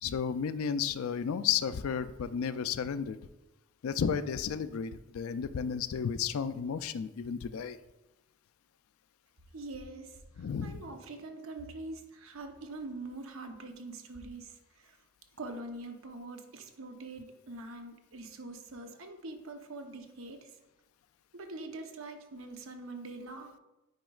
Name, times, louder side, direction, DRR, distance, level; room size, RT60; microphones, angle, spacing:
voice 1, 0.0-3.2 3.8-7.8 10.4-10.8, left 7 dB, 85° left, 13 dB, 0.4 m, -33 dB
voice 2, 9.5-15.0 15.4-20.5 21.3-23.5, right 2 dB, 70° right, 5 dB, 0.8 m, -44 dB
9.0 x 5.1 x 2.4 m, 0.98 s
head